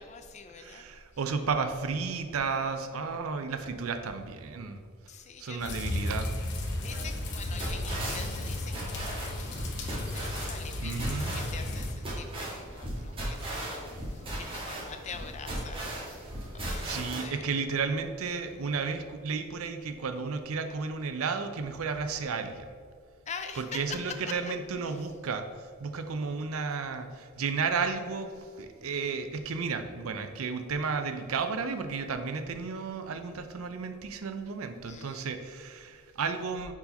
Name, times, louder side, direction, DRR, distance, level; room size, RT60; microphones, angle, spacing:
voice 1, 0.0-0.8 5.1-6.1 6.8-15.8 16.5-17.4 23.3-24.5 24.9-25.0 34.8-35.4, left 6 dB, 35° left, 7 dB, 0.5 m, -44 dB
voice 2, 0.6-4.8 5.4-6.3 10.8-11.4 16.8-22.7 23.6-25.5 25.8-28.3 28.6-36.7, right 5 dB, 75° right, 8 dB, 0.5 m, -33 dB
sound 1, 5.6-11.9, left 1 dB, 55° left, 0.8 m, -34 dB
sound 2, 6.8-17.2, right 1 dB, 25° right, 1.5 m, -38 dB
4.7 x 4.2 x 5.2 m, 2.1 s
head